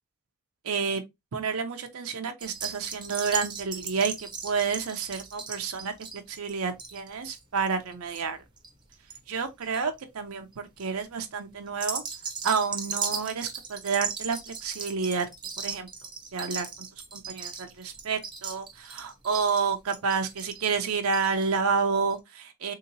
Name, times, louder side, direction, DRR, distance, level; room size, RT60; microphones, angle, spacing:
voice 1, 0.6-1.0 1.3-8.4 9.3-10.5 10.8-12.0 12.4-15.3 15.6-15.9 16.3-22.7, right 5 dB, 70° right, 0.5 m, -29 dB
sound 1, 2.4-9.2 9.5-10.0 10.5-10.8 11.7-21.5 21.8-21.9 22.1-22.2, right 6 dB, 20° right, 0.6 m, -37 dB
3.6 x 2.8 x 2.6 m
head